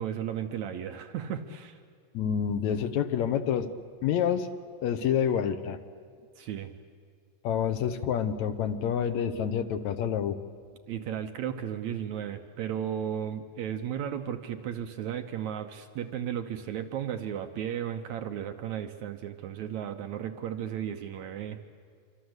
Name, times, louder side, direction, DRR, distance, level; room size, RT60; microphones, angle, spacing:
voice 1, 0.0-1.8 6.4-6.7 10.9-21.6, right 9 dB, 70° right, 7 dB, 2.2 m, -34 dB
voice 2, 2.1-3.7 4.0-4.5 4.8-5.8 7.4-10.4, left 8 dB, 70° left, 10 dB, 2.1 m, -28 dB
26.5 x 24.5 x 8.0 m, 2.1 s
omnidirectional pair, 3.6 m